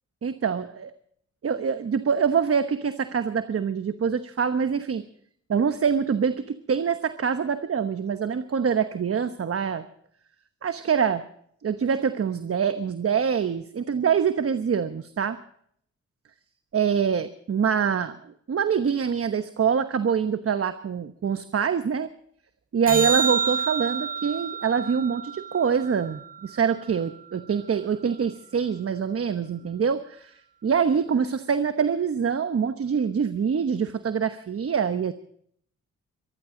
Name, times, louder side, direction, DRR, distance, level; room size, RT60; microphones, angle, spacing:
voice 1, 0.2-0.9 1.4-5.0 5.5-9.8 10.6-11.2 11.6-15.4 16.7-18.2 18.5-22.1 22.7-30.3 30.6-35.1, right 6 dB, 50° right, 10 dB, 1.1 m, -25 dB
sound 1, 22.9-27.3 33.9-34.0, right 6 dB, 30° right, 1.0 m, -30 dB
23.5 x 14.5 x 3.9 m, 0.65 s
cardioid pair, 70°, 29 cm